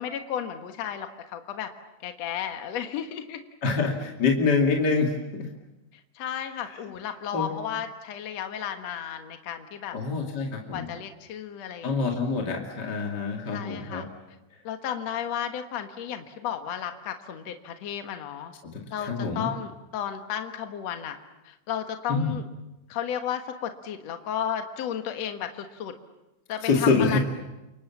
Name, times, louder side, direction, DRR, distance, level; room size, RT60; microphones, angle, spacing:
voice 1, 0.0-1.7 2.0-3.4 6.1-10.0 10.7-12.5 13.5-14.1 14.6-18.5 18.9-21.2 21.4-22.5 22.9-25.9 26.5-27.2, left 9 dB, 60° left, 6 dB, 2.5 m, -33 dB
voice 2, 3.6-5.5 7.3-7.5 9.9-10.9 11.8-14.1 18.6-19.5 22.1-22.3 26.6-27.2, left 4 dB, 35° left, 0 dB, 2.8 m, -26 dB
29.5 x 26.0 x 7.3 m, 0.98 s
omnidirectional pair, 3.5 m